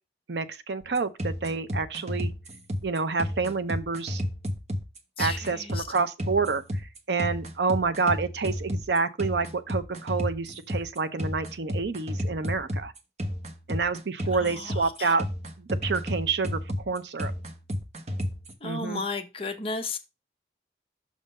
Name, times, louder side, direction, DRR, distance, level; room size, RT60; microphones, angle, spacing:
voice 1, 0.3-2.3 2.8-4.2 5.2-6.6 7.1-12.9 13.7-15.2 15.6-16.6 16.9-17.3 18.6-19.0, right 4 dB, 75° right, 0.6 m, -28 dB
sound 1, 0.8-18.5, equal, 40° right, 0.9 m, -32 dB
voice 2, 5.2-5.9 14.3-15.1 18.6-20.0, left 3 dB, 30° left, 0.9 m, -34 dB
6.2 x 3.8 x 5.3 m
head